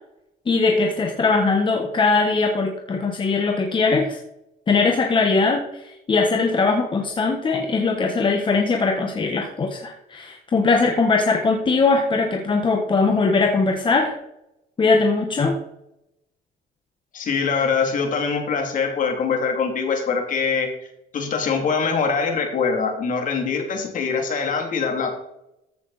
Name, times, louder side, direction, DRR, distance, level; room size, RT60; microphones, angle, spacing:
voice 1, 0.5-4.2 4.7-14.2 14.8-15.6, left 4 dB, 30° left, 2 dB, 1.3 m, -20 dB
voice 2, 17.1-20.7 21.1-25.1, left 5 dB, 50° left, 3 dB, 2.8 m, -23 dB
14.0 x 6.1 x 4.1 m, 0.83 s
cardioid pair, 110°, 17 cm